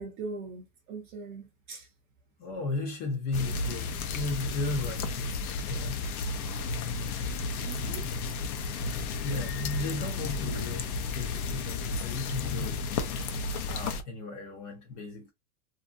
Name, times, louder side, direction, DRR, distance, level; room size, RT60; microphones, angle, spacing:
voice 1, 0.0-1.9 7.6-8.1, right 4 dB, 25° right, 0.5 m, -41 dB
voice 2, 2.4-5.3 5.7-6.0 9.2-10.8 11.1-12.8 13.7-15.3, left 3 dB, 30° left, 0.4 m, -35 dB
sound 1, 3.3-14.0, left 3 dB, 80° left, 0.7 m, -33 dB
2.5 x 2.5 x 2.4 m
supercardioid pair, 155°, 43 cm